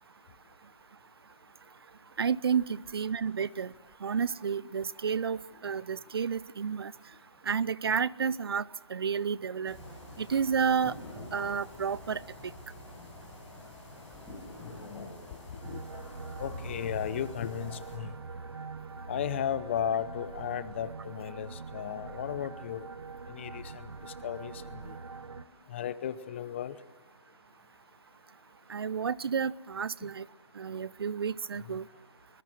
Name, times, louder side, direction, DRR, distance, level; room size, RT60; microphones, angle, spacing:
voice 1, 2.2-3.7 4.0-6.9 7.5-8.6 8.9-9.8 10.2-10.9 11.3-12.2 28.7-30.2 30.6-31.8, right 6 dB, 55° right, 21 dB, 0.6 m, -30 dB
sound 1, 9.6-17.9, left 1 dB, 5° left, 5.8 m, -47 dB
voice 2, 14.7-15.1 15.6-15.8 16.4-18.1 19.1-22.9 23.3-25.0 25.7-26.8 31.6-31.8, left 10 dB, 25° left, 16 dB, 0.8 m, -35 dB
sound 2, 15.6-25.4, right 4 dB, 80° right, 1.3 m, -43 dB
26.0 x 21.0 x 6.2 m, 1.3 s
hypercardioid pair, 165°, 15 cm